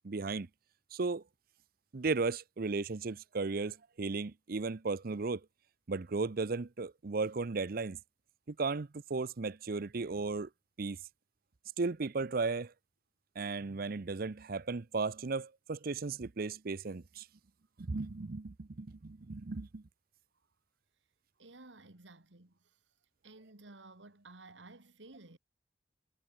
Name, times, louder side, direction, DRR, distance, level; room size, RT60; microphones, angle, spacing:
voice 1, 0.0-0.5 0.9-1.2 1.9-5.4 5.9-8.0 8.5-10.5 10.8-11.0 11.8-12.7 13.4-17.3 17.8-19.8, right 4 dB, 55° right, 0.6 m, -35 dB
voice 2, 21.4-22.8 23.2-25.4, right 2 dB, 85° right, 2.4 m, -54 dB
head